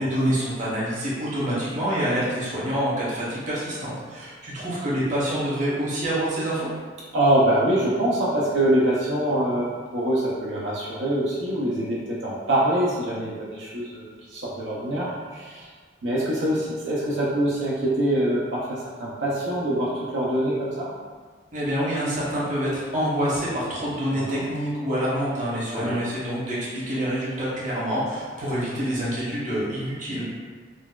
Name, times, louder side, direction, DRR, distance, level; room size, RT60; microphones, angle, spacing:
voice 1, 0.0-6.7 21.5-30.3, equal, 45° right, -8 dB, 0.9 m, -26 dB
voice 2, 7.1-15.7 16.0-20.9 24.1-24.5 25.8-26.0, right 1 dB, 80° right, -7 dB, 0.6 m, -24 dB
3.9 x 2.2 x 2.3 m, 1.5 s
head